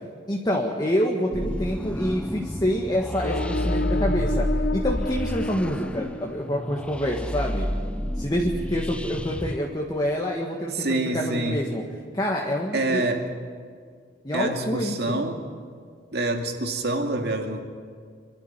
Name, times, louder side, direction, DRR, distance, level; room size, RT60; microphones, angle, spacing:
voice 1, 0.3-4.5 4.7-7.7 8.2-11.8 12.1-13.1 14.2-15.3, equal, 20° left, -1 dB, 1.8 m, -27 dB
sound 1, 1.3-9.6, equal, 5° left, 0.6 m, -29 dB
sound 2, 3.2-6.8, left 2 dB, 65° left, 0.6 m, -31 dB
voice 2, 10.7-11.6 12.7-13.2 14.3-15.4 16.1-17.6, right 2 dB, 60° right, 4 dB, 2.4 m, -26 dB
26.0 x 12.5 x 9.5 m, 2.1 s
head